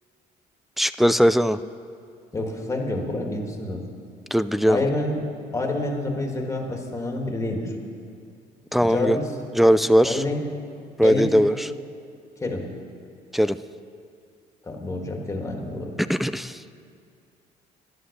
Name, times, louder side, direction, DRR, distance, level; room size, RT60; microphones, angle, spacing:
voice 1, 0.8-1.6 4.3-4.8 8.7-9.2 9.5-10.2 11.0-11.5 13.3-13.6 16.1-16.6, equal, ahead, 12 dB, 0.3 m, -19 dB
voice 2, 2.3-3.8 4.7-5.2 5.5-7.7 8.8-9.3 10.0-10.4 11.0-11.3 12.4-12.6 14.6-16.0, left 2 dB, 15° left, 1 dB, 1.9 m, -28 dB
11.0 x 11.0 x 6.6 m, 2.4 s
cardioid pair, 110°, 17 cm